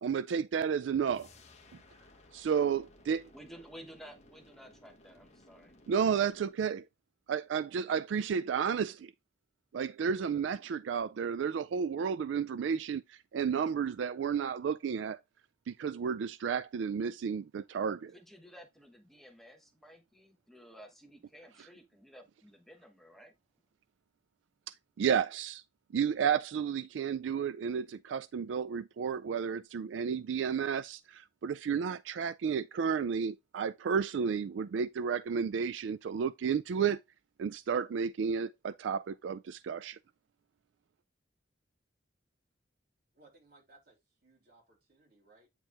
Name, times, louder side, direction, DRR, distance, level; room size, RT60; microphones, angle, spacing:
voice 1, 0.0-1.3 2.3-3.2 5.9-6.9 7.3-9.1 9.7-15.2 15.7-18.1 24.7-25.6 25.9-37.0 37.4-40.0, right 7 dB, 80° right, 0.3 m, -32 dB
sound 1, 1.0-6.6, left 2 dB, 35° left, 1.4 m, -59 dB
voice 2, 3.3-5.7 18.1-23.3, equal, ahead, 1.1 m, -53 dB
voice 3, 43.1-45.5, right 2 dB, 55° right, 3.4 m, -63 dB
9.0 x 4.5 x 3.4 m
head